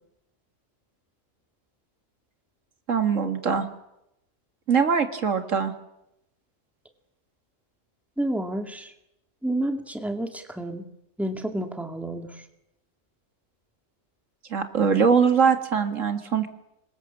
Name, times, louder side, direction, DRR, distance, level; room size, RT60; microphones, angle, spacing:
voice 1, 2.9-3.7 4.7-5.7 14.5-16.5, right 6 dB, 75° right, 8 dB, 2.2 m, -22 dB
voice 2, 8.2-8.9 9.4-10.8 11.2-12.4, right 1 dB, ahead, 6 dB, 2.2 m, -30 dB
26.0 x 22.5 x 7.4 m, 0.86 s
omnidirectional pair, 1.3 m